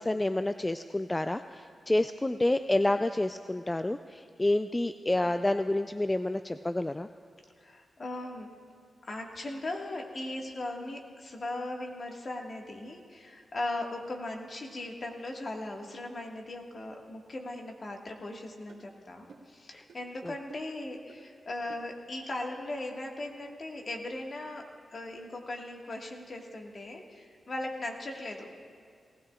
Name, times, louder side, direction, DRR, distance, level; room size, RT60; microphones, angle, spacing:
voice 1, 0.0-7.1 19.7-19.8 20.2-20.3, left 1 dB, 20° left, 10 dB, 0.4 m, -29 dB
voice 2, 7.6-8.5 9.0-28.5, left 2 dB, 55° left, 1 dB, 1.7 m, -38 dB
sound 1, 18.1-18.2 18.7-18.8 19.3-19.5 19.9-20.0 20.5-20.8 21.1-21.2 21.7-21.9 22.3-22.4, right 4 dB, 75° right, 1.8 m, -52 dB
18.5 x 15.5 x 2.4 m, 2.1 s
supercardioid pair, 45°, 0 cm